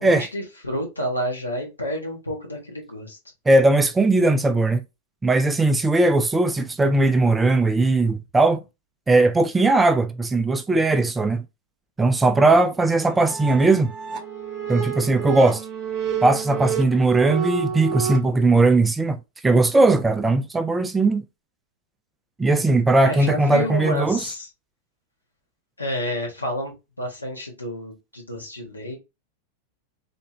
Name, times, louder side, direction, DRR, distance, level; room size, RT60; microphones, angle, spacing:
voice 1, 0.0-3.2 23.0-24.5 25.8-29.0, equal, 80° left, 1.5 m, -30 dB
voice 2, 3.5-4.8 5.2-8.6 9.1-11.4 12.0-13.9 14.7-15.6 16.2-19.2 19.4-21.2 22.4-24.2, right 2 dB, 10° right, 0.4 m, -19 dB
sound 1, 12.9-18.2, right 7 dB, 30° right, 1.0 m, -29 dB
3.4 x 3.1 x 2.8 m
figure-of-eight pair, 90°, 0 cm